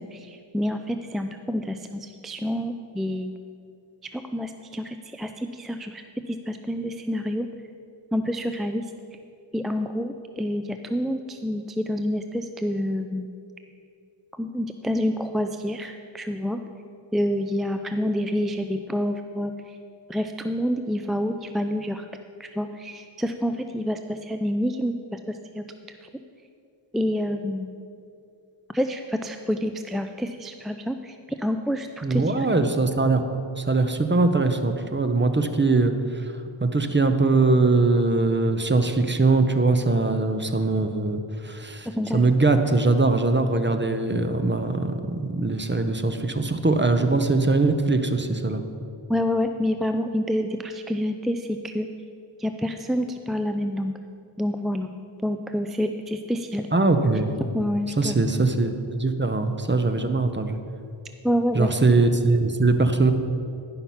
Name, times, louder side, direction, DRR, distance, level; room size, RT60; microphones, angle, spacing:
voice 1, 0.0-3.3 4.1-7.5 8.1-8.9 9.5-13.3 14.3-16.6 17.1-19.8 20.1-22.1 22.4-26.1 26.9-27.8 28.7-32.5 41.9-42.2 49.1-51.9 52.4-53.9 54.4-54.9 55.2-56.7 57.5-58.2 61.2-61.7, equal, ahead, 6 dB, 0.3 m, -28 dB
voice 2, 32.0-33.2 33.6-36.3 36.6-41.9 42.1-48.6 56.7-57.4 58.0-60.6 61.5-63.1, right 3 dB, 20° right, 8 dB, 0.7 m, -21 dB
11.0 x 5.8 x 5.6 m, 2.5 s
wide cardioid pair, 45°, 50 cm